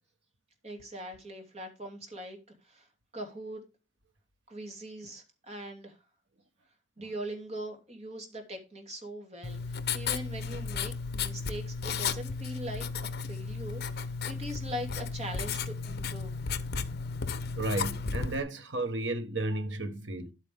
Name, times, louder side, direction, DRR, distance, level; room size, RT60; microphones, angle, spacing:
voice 1, 0.6-2.4 2.6-2.9 3.1-3.6 4.5-6.0 7.0-16.3, right 1 dB, 35° right, 2.9 m, -41 dB
Writing, 9.4-18.4, left 5 dB, 55° left, 0.9 m, -34 dB
voice 2, 17.6-20.3, right 2 dB, 65° right, 1.4 m, -33 dB
11.0 x 8.7 x 3.6 m
head